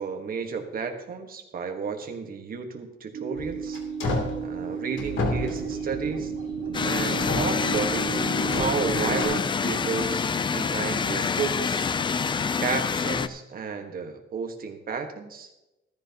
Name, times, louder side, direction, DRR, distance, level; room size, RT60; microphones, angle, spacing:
voice 1, 0.0-3.8 4.4-6.3 6.8-8.2 8.6-10.3 10.5-11.9 12.6-15.5, right 5 dB, 45° right, 5 dB, 1.4 m, -32 dB
sound 1, 3.1-9.4, right 6 dB, 80° right, 1.6 m, -33 dB
sound 2, 3.4-4.4 5.0-6.3 7.0-8.0 8.5-9.2, left 2 dB, 80° left, 2.9 m, -31 dB
sound 3, 6.7-13.3, left 5 dB, 25° left, 0.4 m, -26 dB
14.0 x 13.5 x 2.9 m, 0.95 s
wide cardioid pair, 170°, 20 cm